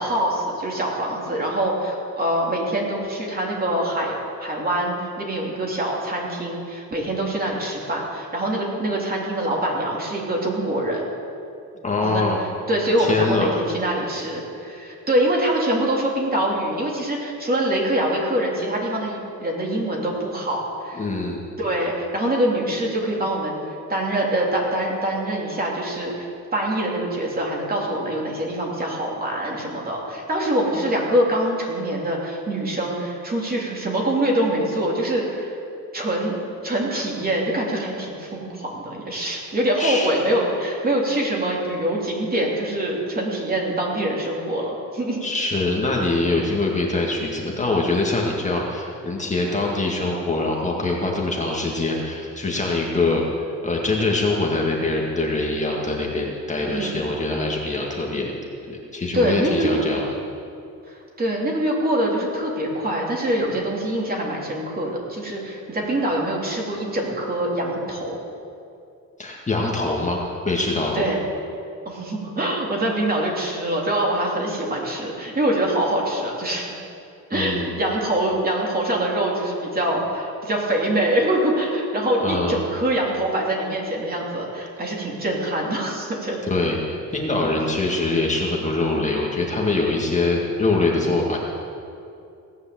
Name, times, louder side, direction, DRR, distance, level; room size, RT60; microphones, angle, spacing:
voice 1, 0.0-11.1 12.0-12.2 12.7-21.0 21.6-23.6 23.9-35.5 35.9-36.3 36.6-45.2 56.7-57.0 59.1-59.8 60.9-68.2 70.9-71.2 71.8-76.7 77.3-86.4, right 1 dB, 30° right, -2 dB, 3.1 m, -24 dB
voice 2, 11.8-12.4 13.0-13.6 20.9-21.4 39.8-40.1 45.2-53.2 53.6-58.3 58.7-60.1 69.2-71.1 77.3-77.8 82.2-82.6 86.4-91.4, left 2 dB, 20° left, -2 dB, 1.9 m, -23 dB
17.0 x 9.6 x 7.6 m, 2.5 s
cardioid pair, 140°, 32 cm